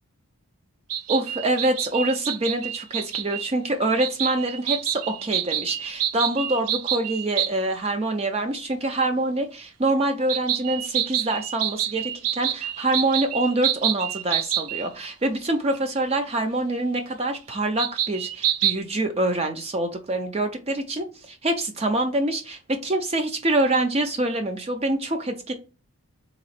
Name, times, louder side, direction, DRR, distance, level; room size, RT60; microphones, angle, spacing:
sound 1, 0.9-3.5 4.0-7.5 10.3-14.9 15.7-15.8 17.8-18.8, right 11 dB, 80° right, 0.5 m, -27 dB
voice 1, 1.1-25.5, right 2 dB, 25° right, 0.5 m, -25 dB
3.7 x 3.0 x 4.2 m
head